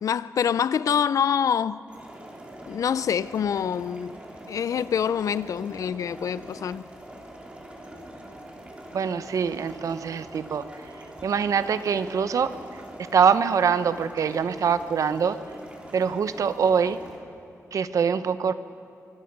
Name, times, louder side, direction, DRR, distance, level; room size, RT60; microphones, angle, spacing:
voice 1, 0.0-1.8 2.7-4.2 4.5-6.8, left 8 dB, 80° left, 17 dB, 0.5 m, -25 dB
sound 1, 1.9-17.2, right 1 dB, 20° right, 3.1 m, -44 dB
voice 2, 8.9-10.6 11.2-12.5 13.1-15.4 15.9-17.0 17.7-18.5, right 6 dB, 75° right, 13 dB, 0.8 m, -24 dB
24.5 x 24.0 x 5.4 m, 2.6 s
wide cardioid pair, 125°, 6 cm